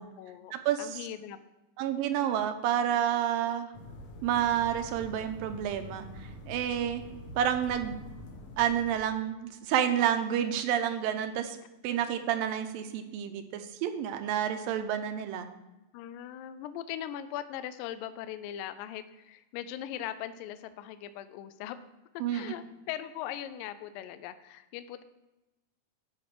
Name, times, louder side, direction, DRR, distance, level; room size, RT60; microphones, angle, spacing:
voice 1, 0.0-0.5 0.8-1.4 15.9-21.8 22.1-25.0, left 11 dB, 80° left, 12 dB, 2.1 m, -40 dB
voice 2, 0.5-1.0 1.8-3.7 4.2-7.0 7.4-8.0 8.6-11.6 11.8-15.5 22.2-22.6, right 10 dB, 80° right, 8 dB, 2.3 m, -29 dB
sound 1, 3.7-9.0, left 1 dB, 60° left, 1.7 m, -45 dB
12.5 x 5.2 x 4.7 m, 1.0 s
omnidirectional pair, 4.3 m